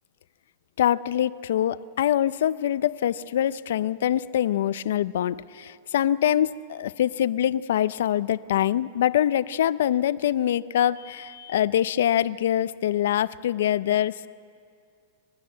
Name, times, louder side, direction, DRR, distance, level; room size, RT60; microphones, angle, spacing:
voice 1, 0.8-14.3, left 11 dB, 75° left, 17 dB, 0.5 m, -24 dB
24.0 x 12.5 x 9.6 m, 2.3 s
supercardioid pair, 150°, 0 cm